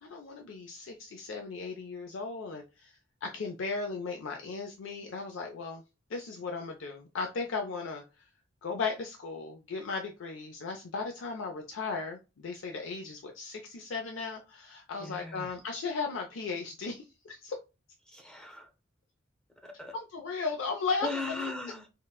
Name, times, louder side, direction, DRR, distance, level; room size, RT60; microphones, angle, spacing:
voice 1, 0.0-5.8 6.1-8.3 8.6-17.6 19.9-21.1 21.4-21.5, left 4 dB, 85° left, 0.5 m, -36 dB
voice 2, 15.0-15.6 18.1-18.7 19.6-19.9 21.0-21.9, left 2 dB, 5° left, 0.6 m, -38 dB
3.7 x 2.1 x 2.3 m
head